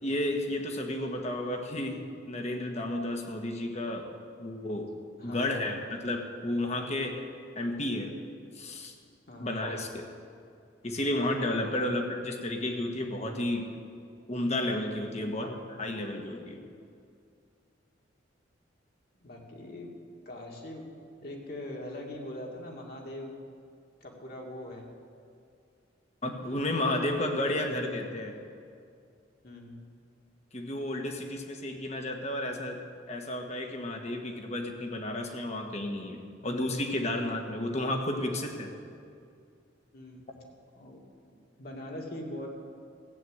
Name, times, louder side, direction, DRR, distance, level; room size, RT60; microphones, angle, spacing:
voice 1, 0.0-4.1 4.4-4.9 5.2-7.2 7.5-8.1 8.5-8.9 9.4-10.1 10.8-13.7 14.3-16.6 26.2-28.4 30.5-32.8 33.1-38.7, left 1 dB, 35° left, 3 dB, 1.4 m, -32 dB
voice 2, 5.2-5.7 9.3-9.5 15.1-15.3 19.2-19.9 20.3-20.8 21.2-23.3 24.0-24.8 29.4-29.7 39.9-40.2 40.7-41.0 41.6-42.5, left 1 dB, 50° left, -1 dB, 2.3 m, -41 dB
15.5 x 8.8 x 7.9 m, 2.4 s
head